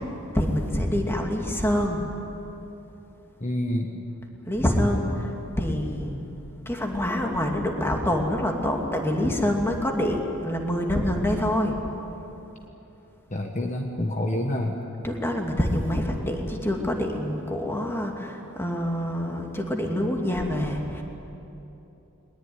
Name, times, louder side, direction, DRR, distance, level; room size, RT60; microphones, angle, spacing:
voice 1, 0.3-2.1 4.5-6.3 6.7-11.8 15.0-21.0, left 1 dB, 10° left, 1 dB, 2.5 m, -26 dB
voice 2, 3.4-4.0 13.3-14.8, left 1 dB, 35° left, 2 dB, 1.4 m, -28 dB
21.5 x 20.5 x 9.7 m, 3.0 s
head